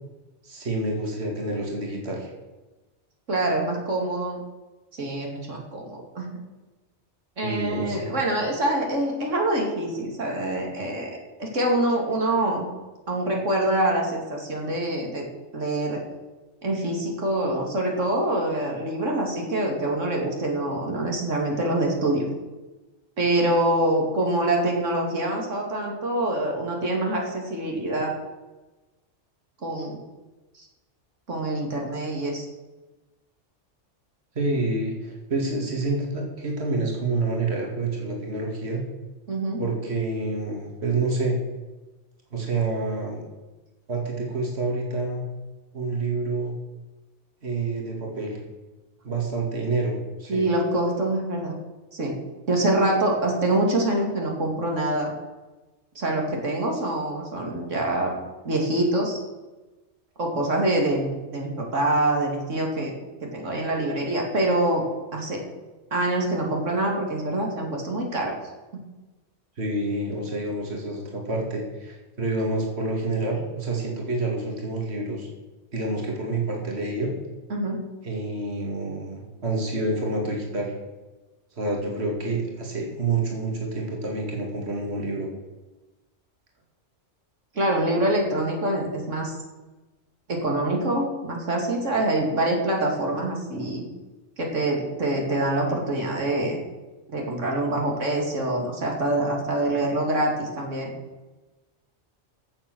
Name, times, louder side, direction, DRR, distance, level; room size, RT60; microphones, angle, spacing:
voice 1, 0.4-2.3 7.4-8.2 34.4-38.8 39.6-41.4 42.3-43.2 43.9-45.2 45.7-46.5 47.4-48.4 49.0-50.5 69.6-75.3 75.7-77.1 78.0-80.7 81.6-85.3, right 2 dB, 60° right, 0 dB, 2.6 m, -28 dB
voice 2, 3.3-4.4 4.9-6.4 7.4-12.6 13.1-15.2 15.5-16.0 16.6-22.3 23.2-28.1 29.6-30.0 30.6-30.7 31.3-32.5 39.3-39.6 50.3-51.6 51.9-52.2 52.5-55.1 55.9-58.1 58.4-59.2 60.2-62.9 63.3-64.8 65.1-65.4 65.9-68.3 77.5-77.8 87.5-89.3 90.3-93.8 94.4-96.6 97.1-100.9, right 1 dB, 90° right, 0 dB, 2.9 m, -25 dB
16.0 x 7.3 x 6.2 m, 1.1 s
omnidirectional pair, 1.2 m